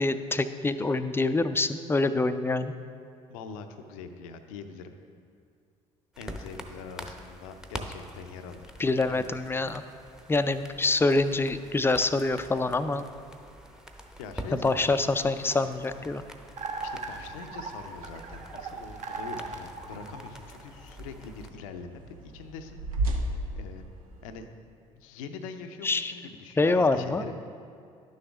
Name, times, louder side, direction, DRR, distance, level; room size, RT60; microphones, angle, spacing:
voice 1, 0.0-2.7 8.8-9.8 10.3-13.1 14.5-16.2 25.8-26.1 26.6-27.2, left 3 dB, 15° left, 11 dB, 0.4 m, -26 dB
voice 2, 3.3-4.9 6.2-8.7 9.1-9.3 14.2-15.1 16.8-22.8 23.6-23.8 24.2-24.5 25.0-27.4, left 5 dB, 75° left, 8 dB, 0.6 m, -43 dB
sound 1, 6.1-21.5, equal, 5° right, 0.8 m, -46 dB
sound 2, 15.4-24.5, right 1 dB, 80° right, 0.7 m, -38 dB
sound 3, 16.6-20.8, right 4 dB, 40° right, 0.9 m, -38 dB
11.0 x 6.4 x 3.5 m, 2.3 s
figure-of-eight pair, 55°, 18 cm